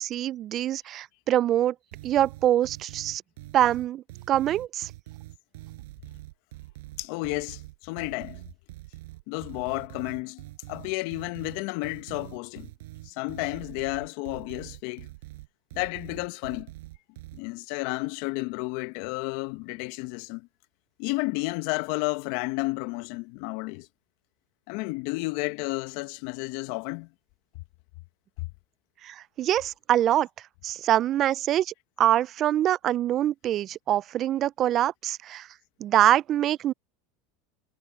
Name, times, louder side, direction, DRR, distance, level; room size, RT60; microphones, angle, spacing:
voice 1, 0.0-1.7 2.0-3.2 3.5-4.9 29.0-30.3 30.6-35.5 35.8-36.7, right 12 dB, 45° right, 0.5 m, -24 dB
sound 1, 1.9-17.4, right 19 dB, 75° right, 5.7 m, -44 dB
voice 2, 7.0-8.4 9.3-12.7 13.0-15.1 15.7-16.7 17.3-20.5 21.0-23.9 24.7-27.1, left 24 dB, 65° left, 1.3 m, -32 dB
hypercardioid pair, 95°, 0 cm